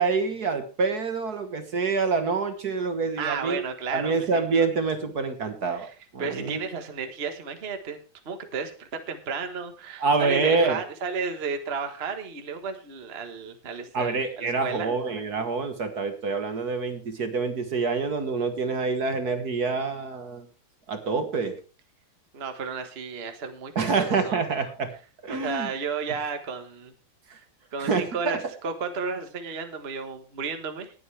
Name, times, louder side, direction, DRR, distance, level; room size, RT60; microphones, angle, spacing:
voice 1, 0.0-3.6 3.9-5.9 6.1-6.6 10.0-10.8 13.9-20.5 20.9-21.6 23.7-24.9 25.2-25.7 27.8-28.4, right 4 dB, 50° right, 7 dB, 1.8 m, -26 dB
voice 2, 3.2-4.7 5.7-5.9 6.2-8.0 8.2-14.9 22.3-24.4 25.3-26.9 27.3-27.4 27.7-30.9, right 5 dB, 35° right, 6 dB, 1.4 m, -33 dB
19.5 x 8.1 x 3.3 m, 0.35 s
omnidirectional pair, 2.3 m